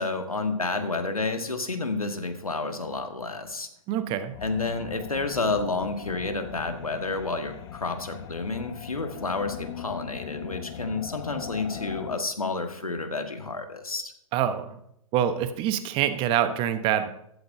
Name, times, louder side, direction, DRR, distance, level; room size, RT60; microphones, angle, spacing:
voice 1, 0.0-3.7 4.4-14.1, left 3 dB, 90° left, 6 dB, 1.6 m, -30 dB
voice 2, 3.9-4.4 14.3-14.8 15.1-17.1, right 10 dB, 30° right, 10 dB, 0.9 m, -25 dB
sound 1, 4.3-12.2, left 10 dB, 45° left, 1.2 m, -40 dB
15.0 x 13.0 x 2.7 m, 0.76 s
figure-of-eight pair, 115°, 18 cm